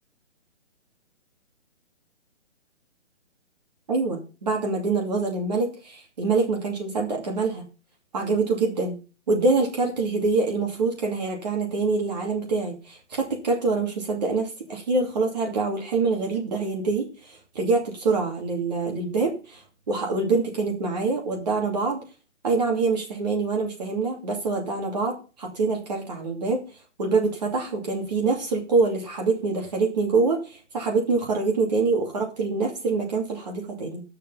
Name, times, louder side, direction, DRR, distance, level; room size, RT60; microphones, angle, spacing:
voice 1, 3.9-7.6 8.1-8.9 9.3-19.6 19.9-22.0 22.4-26.6 27.0-34.0, right 3 dB, 35° right, 0 dB, 2.6 m, -25 dB
11.5 x 6.9 x 5.6 m, 0.34 s
hypercardioid pair, 180°, 34 cm